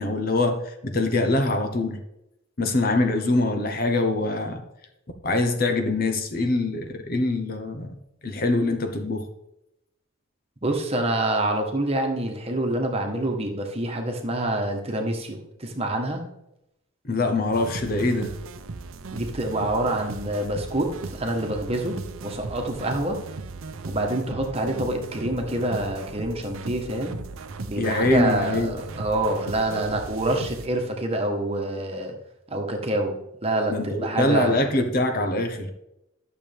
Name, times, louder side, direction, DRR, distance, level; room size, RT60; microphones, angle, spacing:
voice 1, 0.0-2.0 2.6-4.6 5.2-7.9 8.2-9.3 17.0-18.3 27.8-28.8 33.7-35.7, left 2 dB, 45° left, 6 dB, 1.0 m, -24 dB
voice 2, 10.6-16.2 19.1-23.2 23.8-27.2 27.7-32.1 32.5-34.7, right 1 dB, 30° right, 3 dB, 1.3 m, -26 dB
sound 1, 17.5-30.7, right 3 dB, 85° right, 0.7 m, -37 dB
12.0 x 6.9 x 3.5 m, 0.86 s
head